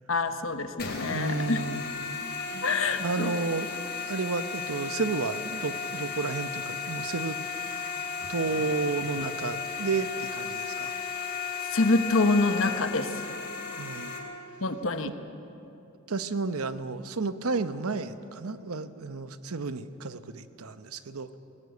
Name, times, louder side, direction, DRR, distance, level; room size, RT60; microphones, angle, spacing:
voice 1, 0.1-1.6 2.6-3.3 11.7-13.2 14.6-15.1, left 3 dB, 70° left, 8 dB, 1.2 m, -26 dB
sound 1, 0.8-14.2, left 5 dB, 45° left, 3.1 m, -35 dB
voice 2, 1.1-1.8 3.0-3.7 4.1-7.4 8.3-10.9 13.8-14.2 16.1-21.4, right 4 dB, 90° right, 12 dB, 0.9 m, -32 dB
20.0 x 19.0 x 8.3 m, 2.9 s
head